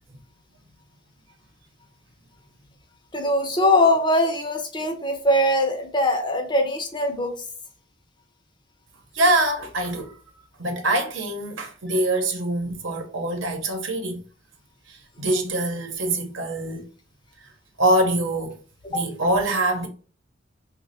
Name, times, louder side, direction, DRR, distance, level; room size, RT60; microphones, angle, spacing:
voice 1, 3.1-7.3 18.9-19.0, left 1 dB, 25° left, 0.6 m, -21 dB
voice 2, 9.1-10.1 10.6-14.2 14.9-16.9 17.8-18.6 18.9-19.9, right 1 dB, 80° right, 0.9 m, -24 dB
3.2 x 2.2 x 4.0 m
head